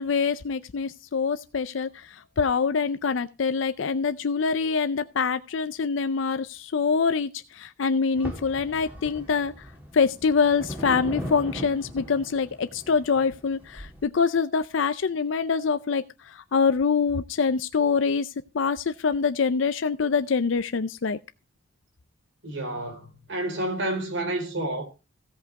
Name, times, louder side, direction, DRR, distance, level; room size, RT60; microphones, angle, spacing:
voice 1, 0.0-9.7 9.9-21.2, left 5 dB, 70° left, 0.5 m, -25 dB
sound 1, 8.1-14.0, equal, 10° right, 2.3 m, -39 dB
voice 2, 22.4-24.9, right 1 dB, 65° right, 3.5 m, -30 dB
16.5 x 5.4 x 4.7 m
head